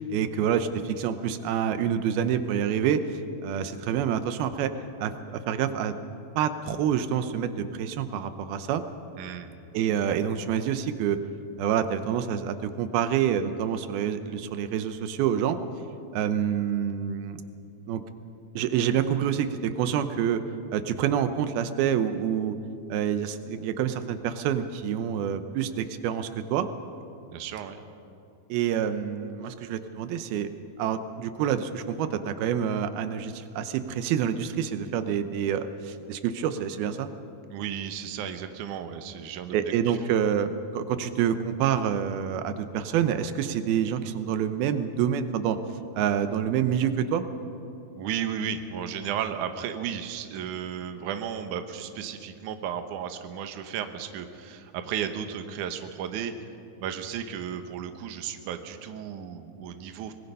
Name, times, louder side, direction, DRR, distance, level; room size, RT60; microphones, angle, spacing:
voice 1, 0.1-3.0 3.4-4.7 5.0-6.0 6.4-8.8 9.7-11.2 11.6-15.6 16.1-17.4 17.9-18.0 18.5-20.4 20.7-22.6 22.9-26.7 28.5-30.5 30.8-37.1 39.5-45.6 46.0-47.2, right 9 dB, 90° right, 10 dB, 2.8 m, -27 dB
voice 2, 9.1-9.5 27.3-27.8 37.5-40.0 48.0-56.3 56.8-60.1, right 8 dB, 65° right, 8 dB, 2.3 m, -34 dB
24.0 x 21.0 x 5.5 m, 2.6 s
omnidirectional pair, 4.2 m